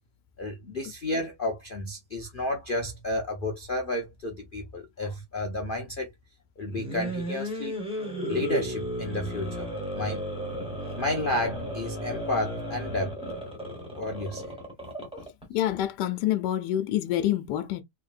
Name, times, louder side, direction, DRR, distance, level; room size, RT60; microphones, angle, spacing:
voice 1, 0.4-6.1 6.6-7.8 8.3-9.7 9.9-10.2 11.0-13.1 14.0-14.5, left 1 dB, 50° left, 0.6 m, -31 dB
sound 1, 6.7-15.4, equal, 5° right, 1.0 m, -34 dB
voice 2, 15.5-17.8, left 12 dB, 80° left, 1.2 m, -27 dB
3.7 x 3.5 x 2.4 m
omnidirectional pair, 1.9 m